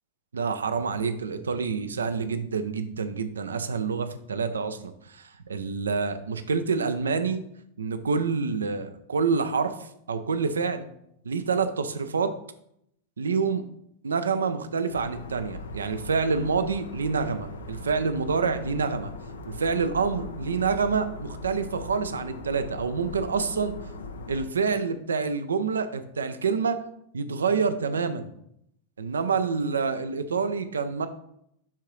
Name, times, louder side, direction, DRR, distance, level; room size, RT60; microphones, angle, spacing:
voice 1, 0.3-4.8 5.1-7.4 7.8-9.7 10.1-10.9 11.2-12.3 13.2-13.6 14.0-19.1 19.5-23.7 24.3-26.8 27.1-28.3 29.0-31.1, right 5 dB, 70° right, 11 dB, 0.6 m, -27 dB
sound 1, 14.9-24.5, left 3 dB, 70° left, 0.6 m, -39 dB
10.0 x 3.7 x 3.1 m, 0.74 s
figure-of-eight pair, 90°, 0 cm